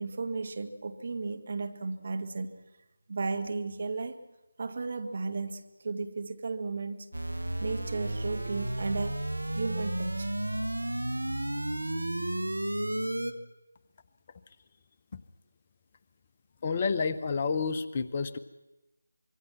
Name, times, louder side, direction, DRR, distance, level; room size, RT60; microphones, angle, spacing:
voice 1, 0.0-2.6 3.1-4.2 4.6-7.1 7.6-9.3 9.5-10.3, right 3 dB, 45° right, 7 dB, 1.7 m, -34 dB
sound 1, 7.1-13.3, right 1 dB, 75° right, 1.7 m, -32 dB
voice 2, 16.6-18.4, left 5 dB, 30° left, 11 dB, 0.9 m, -29 dB
25.5 x 23.0 x 6.1 m, 1.0 s
figure-of-eight pair, 160°, 0 cm